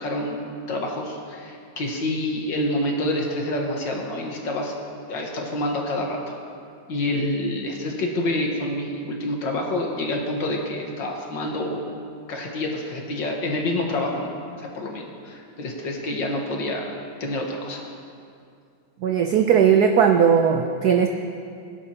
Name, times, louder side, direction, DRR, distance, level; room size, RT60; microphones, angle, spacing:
voice 1, 0.0-4.7 5.1-6.4 6.9-11.8 12.3-14.3 14.6-17.8, left 1 dB, 60° left, 0 dB, 2.0 m, -27 dB
voice 2, 19.0-21.1, right 7 dB, 85° right, 5 dB, 0.8 m, -18 dB
20.5 x 10.5 x 2.9 m, 2.4 s
omnidirectional pair, 2.4 m